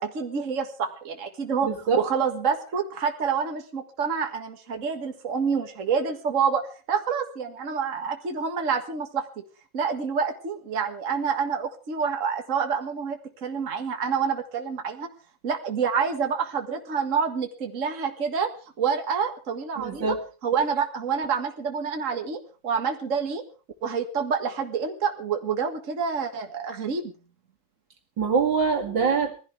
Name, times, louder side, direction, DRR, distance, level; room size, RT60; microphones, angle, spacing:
voice 1, 0.0-1.7 2.0-9.4 9.7-15.1 15.4-18.5 18.8-20.2 20.4-23.4 23.8-27.1, right 6 dB, 45° right, 4 dB, 2.1 m, -27 dB
voice 2, 1.6-2.0 19.8-20.2 28.2-29.3, right 5 dB, 80° right, 4 dB, 2.9 m, -24 dB
21.5 x 15.0 x 3.5 m, 0.36 s
omnidirectional pair, 2.0 m